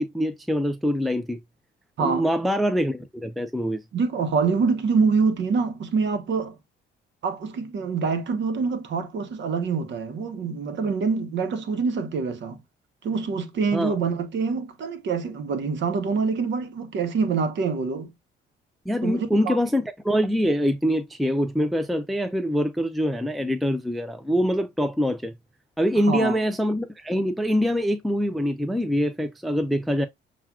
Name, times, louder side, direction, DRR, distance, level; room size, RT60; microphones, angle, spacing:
voice 1, 0.0-1.4 2.0-3.8 13.7-13.9 18.9-25.3 25.8-30.1, equal, ahead, 0.5 m, -24 dB
voice 2, 2.0-2.3 3.9-6.5 7.2-12.6 13.0-18.1 19.0-19.6 26.1-26.4, right 5 dB, 65° right, 1.0 m, -25 dB
7.2 x 2.4 x 2.4 m
cardioid pair, 90°, 20 cm